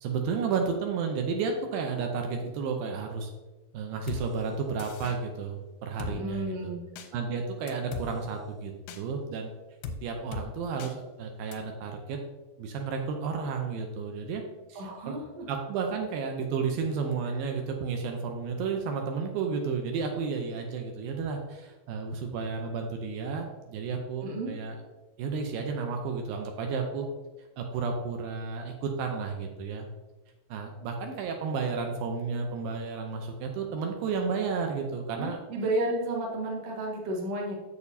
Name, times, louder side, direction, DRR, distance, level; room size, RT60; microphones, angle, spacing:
voice 1, 0.0-3.3 3.7-6.7 7.1-9.5 10.0-12.2 12.6-14.4 14.7-15.2 15.5-24.8 25.2-27.1 27.6-29.9 30.5-35.4, right 5 dB, 80° right, 3 dB, 2.4 m, -32 dB
Drum kit, 4.1-4.2 4.8-5.2 6.0-6.1 7.0-7.1 7.7-8.1 8.9-9.0 9.8-10.0 10.3-10.5 10.8-10.9 11.5-11.6, left 5 dB, 85° left, 2.4 m, -37 dB
voice 2, 6.1-6.8 14.8-15.5 24.2-24.5 35.2-37.5, right 1 dB, 55° right, -2 dB, 2.0 m, -32 dB
8.4 x 7.0 x 2.7 m, 1.2 s
omnidirectional pair, 4.2 m